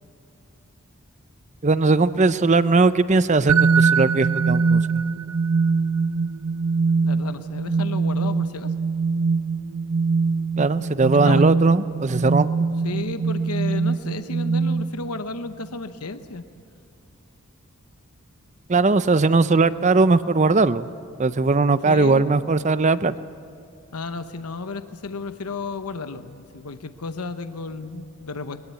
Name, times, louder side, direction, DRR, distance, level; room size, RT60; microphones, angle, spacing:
voice 1, 1.6-4.8 10.6-12.7 18.7-20.9 21.2-23.2, right 3 dB, 30° right, 14 dB, 0.6 m, -19 dB
sound 1, 3.5-15.2, right 4 dB, 85° right, 0.6 m, -22 dB
voice 2, 7.0-8.7 11.0-11.7 12.8-16.4 21.8-22.3 23.9-28.6, left 3 dB, 90° left, 10 dB, 0.9 m, -33 dB
22.0 x 21.5 x 8.3 m, 2.5 s
head